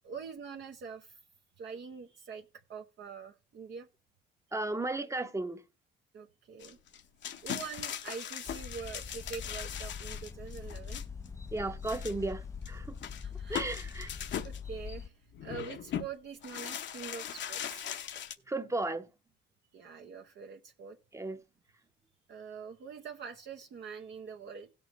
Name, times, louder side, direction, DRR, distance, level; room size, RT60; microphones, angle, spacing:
voice 1, 0.0-1.2 1.6-2.4 2.7-3.9 4.5-4.6 6.1-6.8 7.4-11.0 13.2-13.7 14.4-17.9 19.7-21.0 22.3-24.7, right 6 dB, 65° right, 0.9 m, -44 dB
voice 2, 4.5-5.6 11.5-12.9 13.5-14.1 18.5-19.1 21.1-21.4, right 2 dB, 15° right, 0.8 m, -34 dB
sound 1, 6.6-11.3 11.8-12.3 12.6-12.7 13.0-14.6 15.3-16.1 16.4-18.3, left 9 dB, 65° left, 0.8 m, -40 dB
sound 2, 8.5-15.1, left 6 dB, 15° left, 0.5 m, -43 dB
17.0 x 6.8 x 3.1 m
cardioid pair, 90°, 20 cm